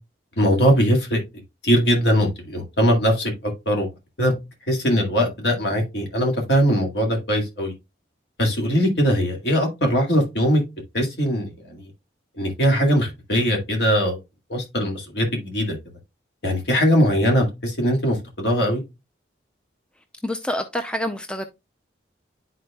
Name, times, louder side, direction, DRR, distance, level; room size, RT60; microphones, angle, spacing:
voice 1, 0.4-1.2 1.6-3.9 4.2-4.3 4.7-7.7 8.4-10.6 10.9-11.8 12.4-14.2 14.5-15.8 16.4-18.8, equal, 65° left, 2.0 m, -21 dB
voice 2, 20.2-21.4, left 1 dB, 5° left, 0.4 m, -27 dB
11.0 x 4.3 x 2.3 m
head